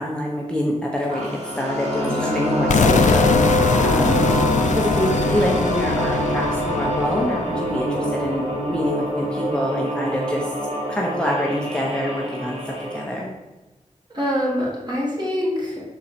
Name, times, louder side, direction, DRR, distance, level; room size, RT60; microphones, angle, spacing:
voice 1, 0.0-4.2 4.7-10.5 10.9-13.3, left 1 dB, 5° left, -3 dB, 0.9 m, -26 dB
sound 1, 1.1-13.1, equal, 60° right, 1.4 m, -25 dB
sound 2, 2.7-8.6, left 5 dB, 75° left, 0.4 m, -23 dB
voice 2, 3.9-4.4 14.1-15.8, equal, 35° right, -6 dB, 2.3 m, -24 dB
6.4 x 4.3 x 4.2 m, 1.1 s
wide cardioid pair, 75°, 13 cm